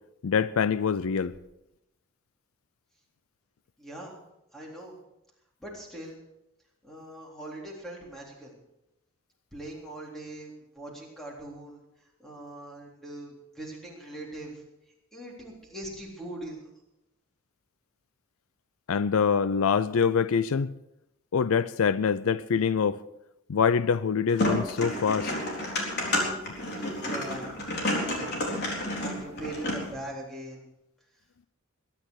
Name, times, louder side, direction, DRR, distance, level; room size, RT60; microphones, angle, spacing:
voice 1, 0.2-1.3 18.9-20.7 21.3-23.0 23.5-25.3, left 6 dB, 70° left, 0.4 m, -25 dB
voice 2, 3.8-4.1 4.5-5.0 5.6-6.2 6.8-8.5 9.5-11.8 12.2-14.6 15.1-16.7 26.8-27.6 27.9-28.5 28.8-30.6, right 1 dB, ahead, 3.6 m, -41 dB
sound 1, 24.3-29.9, left 1 dB, 45° left, 4.0 m, -30 dB
21.5 x 10.5 x 4.8 m
head